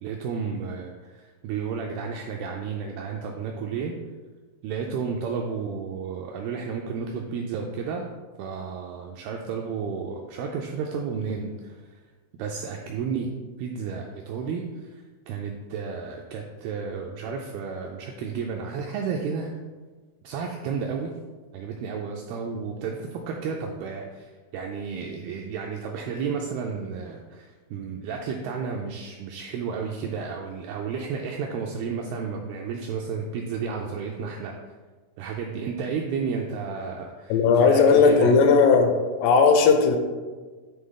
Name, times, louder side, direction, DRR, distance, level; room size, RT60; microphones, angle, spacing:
voice 1, 0.0-3.9 4.6-8.0 8.4-11.8 12.4-13.3 13.6-19.6 20.2-21.1 21.5-34.6 35.2-38.3, right 5 dB, 85° right, 1 dB, 2.2 m, -32 dB
voice 2, 37.3-38.9 39.2-40.0, left 5 dB, 85° left, 5 dB, 2.8 m, -17 dB
8.9 x 3.4 x 3.7 m, 1.4 s
omnidirectional pair, 4.9 m